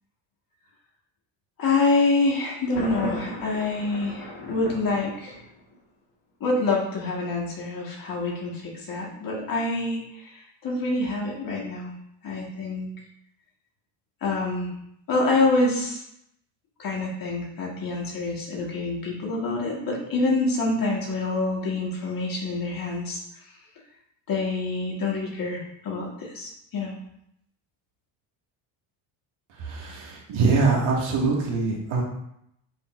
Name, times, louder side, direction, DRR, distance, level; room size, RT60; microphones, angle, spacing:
voice 1, 1.6-5.4 6.4-11.9 12.2-12.9 14.2-14.7 15.1-16.0 16.8-23.2 24.3-26.9, left 3 dB, 40° left, -2 dB, 1.8 m, -26 dB
Thunder, 2.8-5.7, left 1 dB, 65° left, 2.0 m, -36 dB
voice 2, 29.6-32.0, right 4 dB, 65° right, -3 dB, 2.2 m, -23 dB
6.9 x 5.3 x 2.6 m, 0.76 s
cardioid pair, 125°, 49 cm